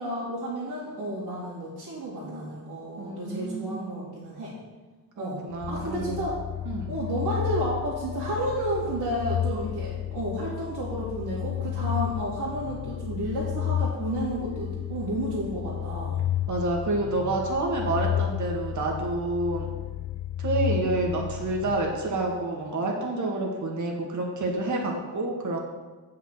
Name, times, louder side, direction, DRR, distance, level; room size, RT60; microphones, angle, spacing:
voice 1, 0.0-4.5 5.2-6.3 6.9-16.2, right 1 dB, 75° right, -9 dB, 2.7 m, -31 dB
voice 2, 3.0-4.1 5.2-6.2 6.6-6.9 16.5-19.7 20.4-25.6, right 2 dB, 50° right, 0 dB, 2.0 m, -28 dB
sound 1, 5.5-22.4, left 11 dB, 45° left, 0.4 m, -32 dB
8.0 x 5.7 x 6.5 m, 1.3 s
cardioid pair, 105°, 38 cm